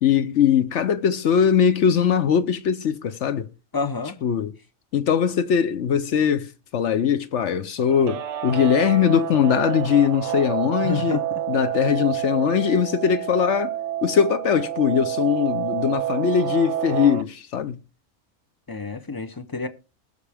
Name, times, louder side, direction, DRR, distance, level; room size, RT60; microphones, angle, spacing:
voice 1, 0.0-3.5 4.2-4.5 4.9-11.2 11.5-13.7 14.0-17.8, left 8 dB, 60° left, 0.9 m, -21 dB
voice 2, 3.7-4.2 10.8-11.4 18.7-19.7, left 4 dB, 30° left, 0.4 m, -29 dB
Guitar, 7.8-17.2, right 12 dB, 60° right, 0.9 m, -28 dB
19.5 x 6.7 x 3.4 m
omnidirectional pair, 1.5 m